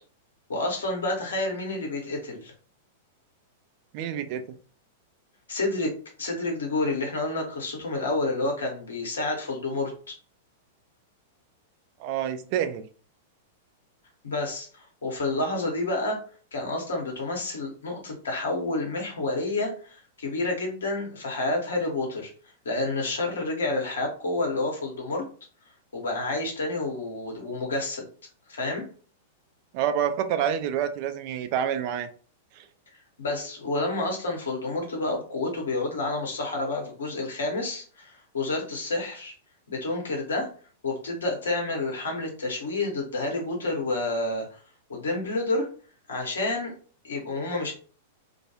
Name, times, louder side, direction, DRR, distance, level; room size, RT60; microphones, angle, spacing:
voice 1, 0.5-2.5 5.5-5.9 6.2-10.1 14.2-16.2 16.5-22.3 22.6-25.2 25.9-28.0 28.5-28.8 33.2-39.3 39.7-40.5 40.8-44.6 44.9-45.7 46.1-46.7 47.0-47.7, left 2 dB, 70° left, 0.9 m, -29 dB
voice 2, 3.9-4.6 12.0-12.8 29.7-32.1 32.5-32.7, right 9 dB, 45° right, 0.3 m, -28 dB
2.2 x 2.2 x 2.9 m
figure-of-eight pair, 95°, 0 cm